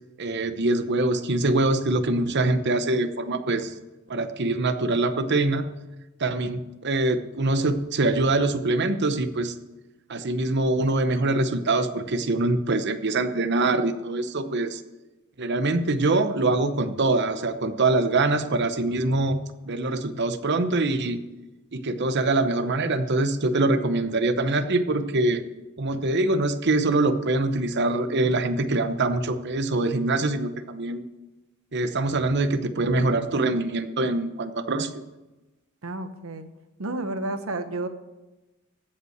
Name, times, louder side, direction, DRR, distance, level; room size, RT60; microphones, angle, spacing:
voice 1, 0.2-3.7 4.1-5.7 6.2-9.6 10.1-14.8 15.4-21.2 21.7-25.5 25.8-31.0 31.7-35.0, right 2 dB, 55° right, 10 dB, 0.9 m, -24 dB
voice 2, 35.8-36.5 36.8-37.9, right 2 dB, 80° right, 9 dB, 1.1 m, -31 dB
15.5 x 5.6 x 8.0 m, 1.1 s
head